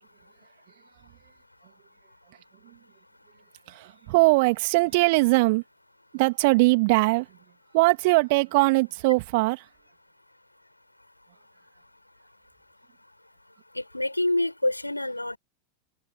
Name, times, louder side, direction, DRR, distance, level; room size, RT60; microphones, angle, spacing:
voice 1, 3.7-5.6 6.1-7.3 7.7-9.6, right 25 dB, 50° right, 2.9 m, -21 dB
voice 2, 13.8-15.4, left 1 dB, 85° left, 7.1 m, -27 dB
open air
figure-of-eight pair, 90°, 0 cm